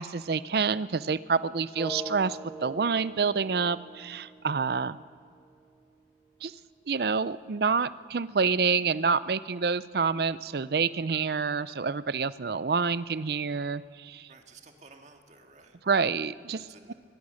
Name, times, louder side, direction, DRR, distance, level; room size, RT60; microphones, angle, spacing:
voice 1, 0.0-5.0 6.4-6.5 6.9-14.3 15.9-16.9, right 5 dB, 60° right, 17 dB, 0.5 m, -28 dB
sound 1, 1.7-5.7, equal, 5° left, 1.6 m, -43 dB
voice 2, 14.3-15.8 16.6-16.9, right 3 dB, 40° right, 4 dB, 1.9 m, -53 dB
21.5 x 21.0 x 6.4 m, 2.2 s
head